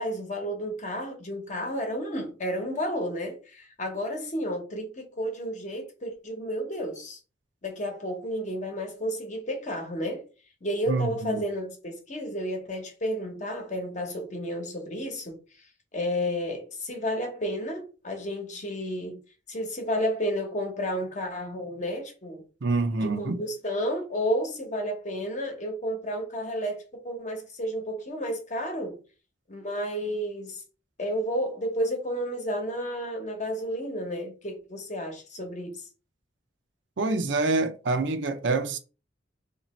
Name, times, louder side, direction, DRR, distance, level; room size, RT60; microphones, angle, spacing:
voice 1, 0.0-7.2 7.6-10.2 10.6-15.7 15.9-19.2 19.5-22.4 23.0-29.0 29.5-30.6 31.0-35.9, equal, 40° left, 1.0 m, -31 dB
voice 2, 10.9-11.4 22.6-23.4 37.0-38.8, right 3 dB, 80° right, 0.6 m, -26 dB
2.9 x 2.7 x 4.2 m
head